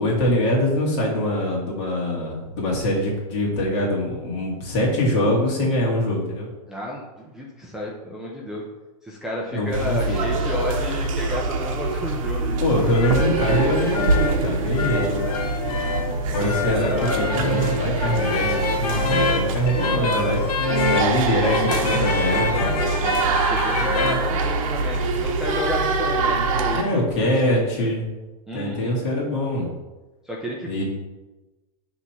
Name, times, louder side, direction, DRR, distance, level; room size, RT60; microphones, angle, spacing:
voice 1, 0.0-6.5 9.5-10.2 12.6-15.1 16.3-20.6 20.9-22.8 26.7-28.1 28.5-29.7 30.7-30.8, left 1 dB, 50° left, -3 dB, 2.0 m, -23 dB
voice 2, 6.7-8.6 9.0-12.6 15.0-15.2 16.6-17.3 22.3-22.7 23.5-26.8 27.3-27.7 28.5-29.0 30.3-30.8, left 1 dB, 5° right, -5 dB, 0.4 m, -31 dB
sound 1, 9.7-26.8, right 3 dB, 60° right, 0.9 m, -24 dB
sound 2, 12.8-24.1, left 2 dB, 80° left, 1.1 m, -26 dB
5.8 x 3.1 x 5.7 m, 1.1 s
supercardioid pair, 165°, 19 cm